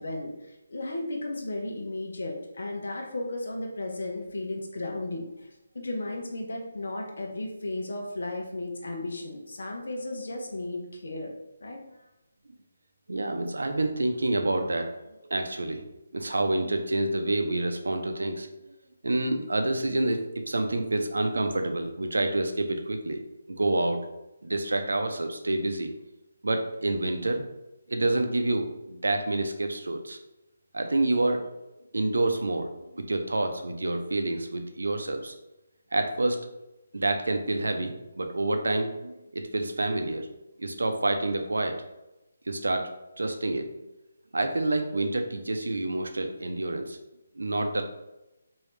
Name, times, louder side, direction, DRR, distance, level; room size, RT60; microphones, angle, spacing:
voice 1, 0.0-5.5 5.7-11.3 11.6-11.8, left 2 dB, 70° left, 1 dB, 0.7 m, -34 dB
voice 2, 13.1-14.9 15.2-15.8 16.1-18.5 19.0-23.2 23.5-24.0 24.4-25.9 26.4-27.5 27.9-30.2 30.7-31.5 31.9-32.7 32.9-35.3 35.9-36.4 36.9-40.3 40.6-41.8 42.5-42.8 43.2-43.7 44.3-47.0 47.4-47.8, right 2 dB, 80° right, 5 dB, 0.5 m, -28 dB
3.1 x 2.7 x 3.2 m, 0.95 s
figure-of-eight pair, 155°, 0 cm